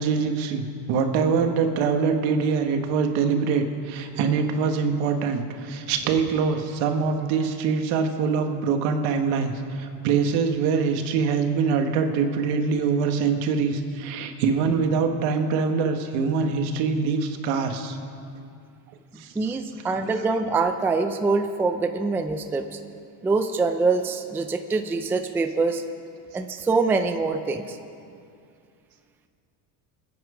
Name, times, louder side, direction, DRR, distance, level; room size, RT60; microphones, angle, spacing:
voice 1, 0.0-18.0 19.2-19.3, right 5 dB, 85° right, 5 dB, 1.7 m, -24 dB
voice 2, 19.4-22.8 23.2-25.8 26.3-27.8, right 3 dB, 5° right, 7 dB, 0.3 m, -24 dB
26.0 x 9.1 x 5.0 m, 2.4 s
cardioid pair, 155°, 46 cm